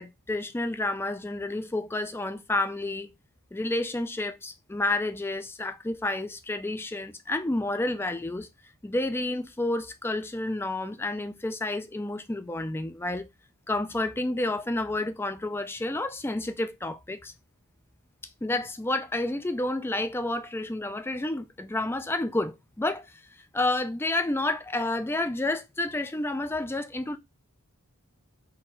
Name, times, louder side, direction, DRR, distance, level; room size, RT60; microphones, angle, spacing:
voice 1, 0.0-3.1 3.5-8.5 8.8-13.3 13.7-17.3 18.4-23.2 23.5-27.2, left 2 dB, 10° left, 0.4 m, -30 dB
3.9 x 2.5 x 4.3 m
head